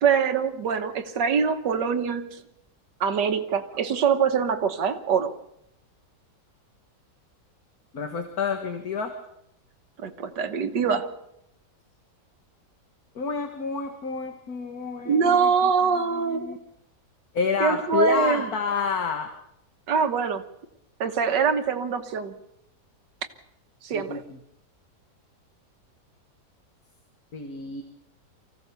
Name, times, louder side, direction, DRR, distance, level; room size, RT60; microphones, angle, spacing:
voice 1, 0.0-2.4 3.0-5.3 10.0-11.1 15.1-16.6 17.6-18.5 19.9-20.4 21.0-22.4 23.8-24.2, right 6 dB, 90° right, 9 dB, 1.9 m, -24 dB
voice 2, 7.9-9.1 13.2-15.5 16.1-16.6 17.3-19.3 23.9-24.2 27.3-27.8, left 5 dB, 60° left, 5 dB, 2.0 m, -29 dB
24.0 x 16.0 x 6.9 m, 0.82 s
omnidirectional pair, 1.8 m